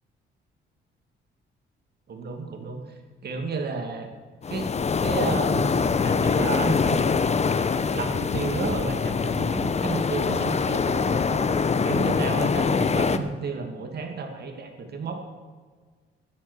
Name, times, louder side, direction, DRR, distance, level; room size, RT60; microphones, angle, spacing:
voice 1, 2.1-2.8 3.2-4.1 4.5-4.7 5.0-7.1 7.9-11.5 11.8-15.2, right 4 dB, 55° right, 4 dB, 2.7 m, -32 dB
sound 1, 4.4-13.2, left 5 dB, 35° left, 1.0 m, -24 dB
14.5 x 11.0 x 6.5 m, 1.5 s
cardioid pair, 90°, 20 cm